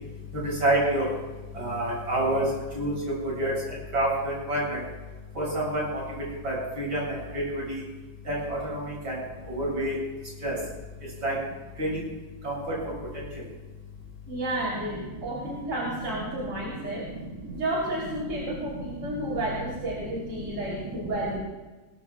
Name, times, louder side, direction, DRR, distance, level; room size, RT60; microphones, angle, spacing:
voice 1, 0.6-1.1 1.6-2.5 2.8-3.1 3.4-3.5 3.9-4.6 5.4-5.8 6.4-7.0 7.3-7.8 8.3-8.8 9.0-9.1 9.5-9.9 10.4-10.5 11.2-11.3 11.8-11.9 12.4-12.5, right 1 dB, 85° right, -4 dB, 7.7 m, -27 dB
voice 2, 14.3-17.1 17.5-21.4, right 1 dB, 65° right, -5 dB, 4.2 m, -31 dB
20.5 x 20.5 x 2.4 m, 1.2 s
omnidirectional pair, 2.1 m